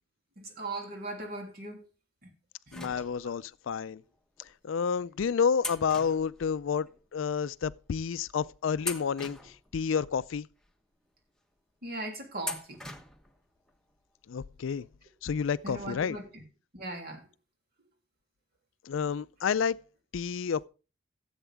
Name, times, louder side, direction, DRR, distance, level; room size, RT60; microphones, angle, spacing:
voice 1, 0.4-1.8 2.7-2.9 11.8-12.8 15.6-16.4 16.7-17.3, right 2 dB, 50° right, 3.0 m, -39 dB
voice 2, 2.7-4.0 4.6-9.4 9.7-10.5 14.3-14.9 15.2-16.2 18.9-19.8 20.1-20.6, left 6 dB, 70° left, 0.4 m, -30 dB
sound 1, 2.7-3.6 4.4-4.5 5.6-7.0 7.3-7.4 8.2-8.4 8.8-10.1 10.6-10.7 12.4-13.4 13.7-13.8 15.0-15.1 15.4-15.5, left 2 dB, 5° left, 1.1 m, -41 dB
15.0 x 8.0 x 3.5 m
head